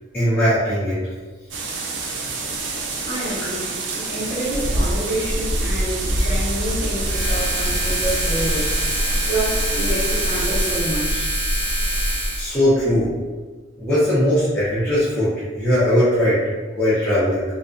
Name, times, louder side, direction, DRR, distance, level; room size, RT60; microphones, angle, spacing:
voice 1, 0.1-1.0 12.4-13.1 13.8-16.4 16.8-17.4, equal, 10° left, -14 dB, 0.6 m, -19 dB
sound 1, 1.5-10.8, right 2 dB, 80° right, 0.4 m, -26 dB
voice 2, 3.0-8.7 9.3-11.3, right 1 dB, 40° left, -10 dB, 1.0 m, -28 dB
sound 2, 7.0-12.5, equal, 40° right, 1.1 m, -23 dB
2.5 x 2.3 x 2.4 m, 1.4 s
head